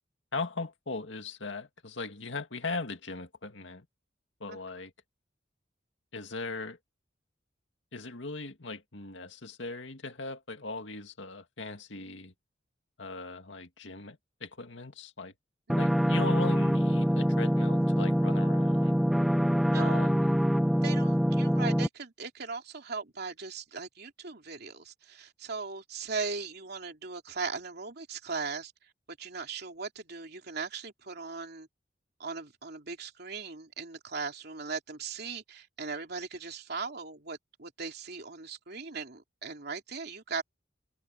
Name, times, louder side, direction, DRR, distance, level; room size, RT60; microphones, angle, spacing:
voice 1, 0.3-3.9 4.4-4.9 6.1-6.8 7.9-12.3 13.0-15.3 15.8-19.0 19.8-20.4, left 3 dB, 85° left, 2.1 m, -39 dB
sound 1, 15.7-21.9, equal, ahead, 0.4 m, -25 dB
voice 2, 20.8-28.7 29.2-31.7 32.2-40.4, right 4 dB, 60° right, 3.1 m, -38 dB
head